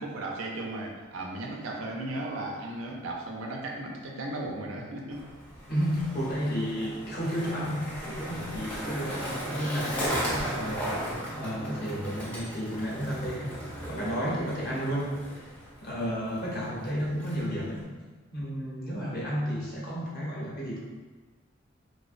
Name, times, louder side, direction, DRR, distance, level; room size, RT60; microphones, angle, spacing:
voice 1, 0.0-5.2 14.7-14.8 16.5-16.6 19.0-19.2, right 2 dB, 80° right, -1 dB, 0.4 m, -36 dB
Skateboard, 5.1-17.8, equal, 5° left, 0.4 m, -37 dB
voice 2, 5.7-10.9 11.3-13.5 13.9-15.1 15.8-17.9 18.3-20.8, equal, 50° left, -6 dB, 0.7 m, -32 dB
2.4 x 2.1 x 2.4 m, 1.3 s
head